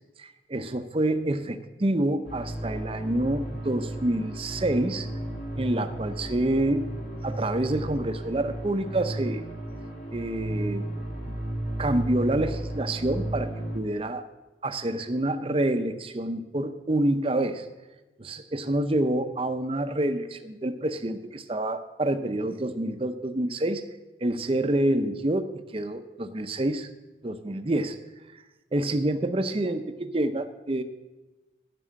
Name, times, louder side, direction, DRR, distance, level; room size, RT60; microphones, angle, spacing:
voice 1, 0.2-5.1 5.6-6.9 7.2-9.4 10.1-10.9 11.2-11.3 11.8-13.5 13.7-14.3 14.6-17.7 18.2-23.8 24.2-26.9 27.2-28.0 28.7-30.8, right 1 dB, 30° right, 9 dB, 0.6 m, -27 dB
sound 1, 2.2-13.8, right 1 dB, 50° left, 2.0 m, -34 dB
11.0 x 6.2 x 8.6 m, 1.1 s
head